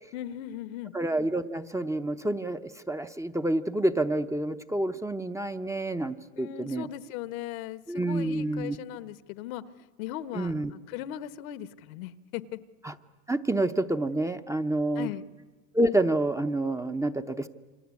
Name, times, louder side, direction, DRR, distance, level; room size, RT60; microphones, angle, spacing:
voice 1, 0.1-0.9 6.4-9.6 10.0-12.6 15.0-15.2, left 12 dB, 75° left, 14 dB, 1.3 m, -38 dB
voice 2, 0.9-2.6 2.9-6.9 7.9-8.8 10.3-10.7 12.8-12.9 13.3-15.1 15.7-17.5, right 1 dB, 5° right, 9 dB, 0.8 m, -28 dB
28.0 x 24.5 x 8.4 m, 1.4 s
supercardioid pair, 110°, 42 cm